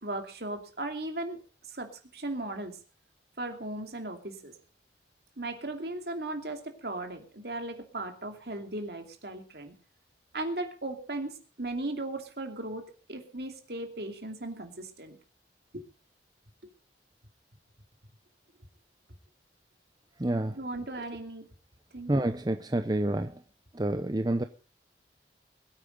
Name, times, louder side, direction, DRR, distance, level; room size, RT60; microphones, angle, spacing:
voice 1, 0.0-1.4 1.7-2.8 3.4-4.5 5.4-9.7 10.3-15.2 15.7-15.9 16.6-16.7 20.5-21.5 21.9-22.1, right 2 dB, 60° right, 5 dB, 2.7 m, -37 dB
voice 2, 20.2-20.6 22.1-23.3 23.7-24.4, right 1 dB, 20° right, 8 dB, 0.7 m, -28 dB
21.5 x 9.0 x 5.3 m, 0.37 s
head